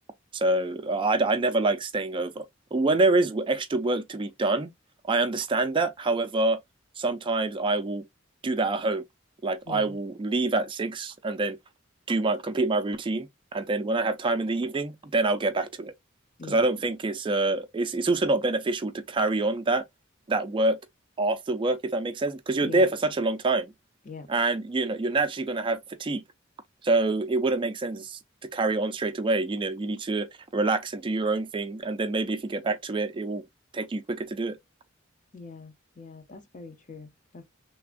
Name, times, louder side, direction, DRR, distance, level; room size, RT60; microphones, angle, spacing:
voice 1, 0.3-2.4 2.7-4.7 5.0-6.6 7.0-8.0 8.4-9.0 9.4-11.6 12.1-15.9 16.5-19.8 20.3-20.8 21.2-23.7 24.3-26.2 26.8-28.2 28.5-33.4 33.7-34.6, right 2 dB, 25° right, 0.3 m, -26 dB
voice 2, 9.6-10.0 16.4-16.7 22.6-22.8 24.0-24.3 35.3-37.4, left 3 dB, 40° left, 0.6 m, -43 dB
3.3 x 2.2 x 2.4 m
head